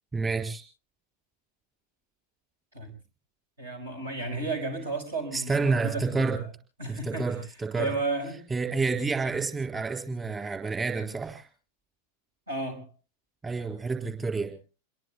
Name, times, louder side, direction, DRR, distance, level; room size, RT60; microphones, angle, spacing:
voice 1, 0.1-0.6 5.3-6.4 6.9-7.9 8.5-11.5 13.4-14.5, right 4 dB, 15° right, 5 dB, 3.8 m, -29 dB
voice 2, 3.6-6.4 6.8-7.3 7.8-8.4 12.5-12.9, right 3 dB, 70° right, 7 dB, 5.5 m, -33 dB
28.5 x 22.0 x 2.3 m, 0.34 s
figure-of-eight pair, 90°, 0 cm